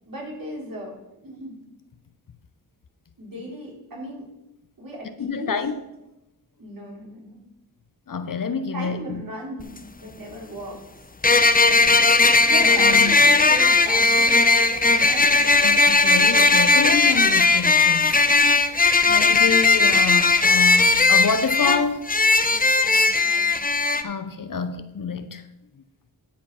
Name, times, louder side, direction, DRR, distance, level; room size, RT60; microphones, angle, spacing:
voice 1, 0.1-0.9 1.2-1.6 3.2-4.3 4.8-5.6 6.6-7.4 8.7-10.8 12.5-15.7 22.5-23.5, right 1 dB, 60° right, 4.4 m, -36 dB
voice 2, 5.2-5.7 8.1-9.2 12.6-13.2 15.6-18.2 19.0-22.0 24.0-25.4, left 5 dB, 55° left, 0.9 m, -27 dB
sound 1, 9.6-9.7 11.2-24.0, left 3 dB, 20° left, 0.8 m, -17 dB
13.0 x 5.1 x 5.7 m
cardioid pair, 45°, 39 cm